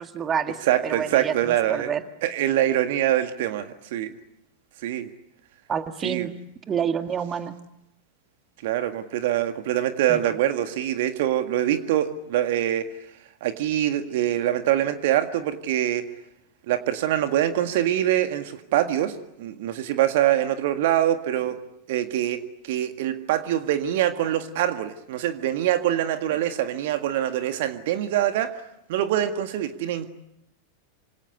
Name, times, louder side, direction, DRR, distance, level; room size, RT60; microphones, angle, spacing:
voice 1, 0.0-0.6 0.8-2.0 5.7-6.3 6.7-7.6 10.1-10.2, right 7 dB, 25° right, 9 dB, 1.9 m, -28 dB
voice 2, 0.6-1.9 2.2-4.1 4.8-5.1 6.0-6.3 8.6-12.9 13.4-16.1 16.7-21.6 21.9-28.6 28.9-30.1, right 12 dB, 50° right, 9 dB, 1.8 m, -24 dB
27.0 x 26.0 x 8.4 m, 0.83 s
figure-of-eight pair, 90°, 0 cm